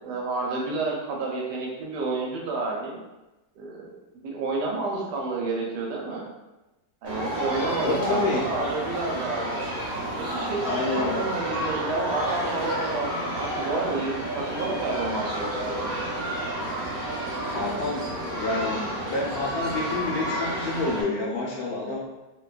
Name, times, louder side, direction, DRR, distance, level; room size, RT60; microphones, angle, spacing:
voice 1, 0.0-3.0 3.6-4.0 4.2-6.2 7.0-9.6 10.2-15.9, right 3 dB, 80° right, -2 dB, 1.2 m, -30 dB
sound 1, 7.0-21.0, right 1 dB, 45° right, 1.1 m, -30 dB
voice 2, 7.8-8.5 10.6-11.2 17.5-22.1, left 2 dB, 70° left, -3 dB, 1.0 m, -28 dB
2.8 x 2.2 x 2.3 m, 1.0 s
omnidirectional pair, 1.8 m